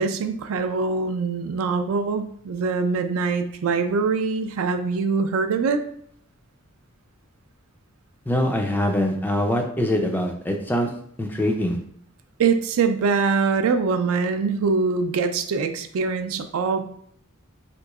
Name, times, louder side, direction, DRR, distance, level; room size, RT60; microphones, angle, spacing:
voice 1, 0.0-5.8 12.4-16.8, right 4 dB, 70° right, 9 dB, 0.3 m, -23 dB
voice 2, 8.3-10.9 11.2-11.8, left 1 dB, 10° left, 3 dB, 0.3 m, -23 dB
3.4 x 2.9 x 2.3 m, 0.64 s
head